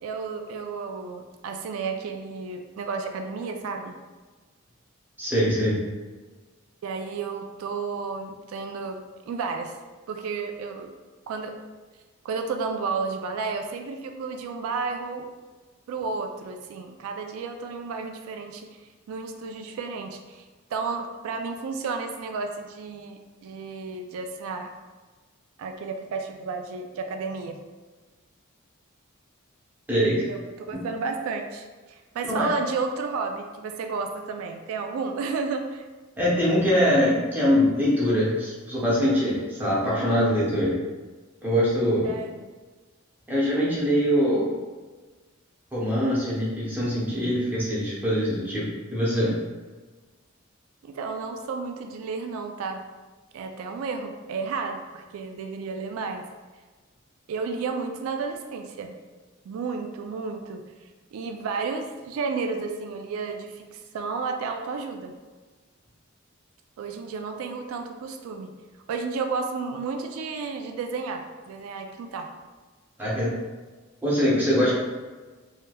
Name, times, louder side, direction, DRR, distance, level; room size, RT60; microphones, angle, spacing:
voice 1, 0.0-4.0 6.8-9.7 10.1-10.9 11.3-11.5 12.2-15.3 15.9-20.4 20.7-24.7 25.6-27.6 30.3-35.8 42.0-42.5 50.8-52.8 53.3-56.2 57.3-59.0 59.5-60.6 61.1-65.1 66.8-68.5 68.9-72.3, right 4 dB, 90° right, 9 dB, 0.3 m, -32 dB
voice 2, 5.2-5.8 29.9-30.2 32.3-32.5 36.2-40.8 41.4-42.1 43.3-44.5 45.7-48.7 48.9-49.3 73.0-73.3 74.0-74.7, equal, 10° right, -7 dB, 0.7 m, -23 dB
3.2 x 2.7 x 2.2 m, 1.3 s
head